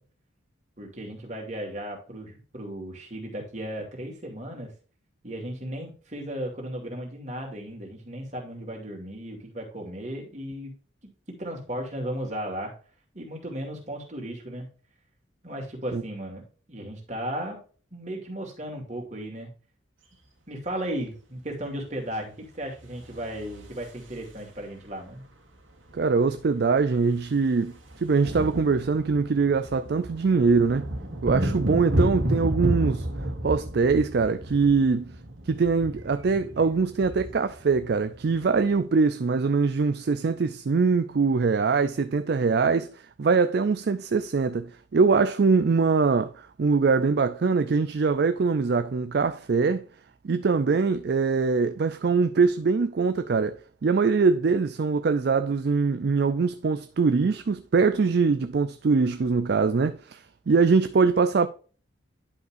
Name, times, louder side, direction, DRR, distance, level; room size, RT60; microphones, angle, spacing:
voice 1, 0.8-4.7 5.2-10.7 11.0-12.7 13.1-14.7 15.4-17.6 17.9-19.5 20.5-25.2, right 1 dB, 35° right, 2.5 m, -35 dB
sound 1, 23.0-24.6 25.9-26.0 26.2-26.4 26.7-38.8, right 1 dB, 75° right, 2.1 m, -32 dB
voice 2, 25.9-30.9 31.2-33.1 33.4-35.1 35.5-49.9 50.2-61.5, right 4 dB, 55° right, 0.4 m, -23 dB
10.5 x 5.5 x 2.5 m
head